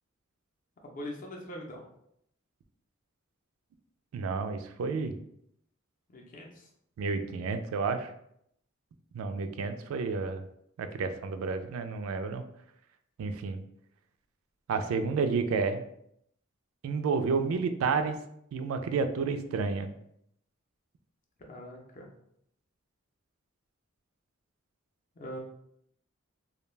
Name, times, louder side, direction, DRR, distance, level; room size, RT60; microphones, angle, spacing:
voice 1, 0.8-1.9 6.1-6.7 21.4-22.1 25.1-25.4, equal, 40° left, 0 dB, 0.5 m, -42 dB
voice 2, 4.1-5.1 7.0-8.1 9.1-10.4 10.8-12.4 13.2-13.6 14.7-15.8 16.8-18.2 18.5-19.9, right 4 dB, 80° right, 10 dB, 0.3 m, -30 dB
2.2 x 2.1 x 3.1 m, 0.73 s
head